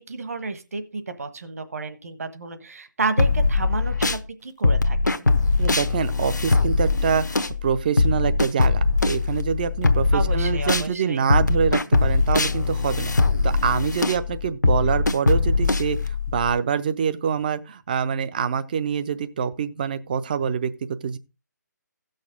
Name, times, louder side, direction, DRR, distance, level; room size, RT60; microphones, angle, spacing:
voice 1, 0.1-5.3 10.1-11.3, right 4 dB, 50° right, 1.3 m, -31 dB
sound 1, 3.2-4.2 4.6-10.9 11.3-16.5, left 3 dB, 70° left, 0.9 m, -21 dB
voice 2, 5.6-13.1 13.4-21.2, right 7 dB, 30° right, 0.6 m, -25 dB
16.0 x 6.5 x 3.7 m
figure-of-eight pair, 145°, 10 cm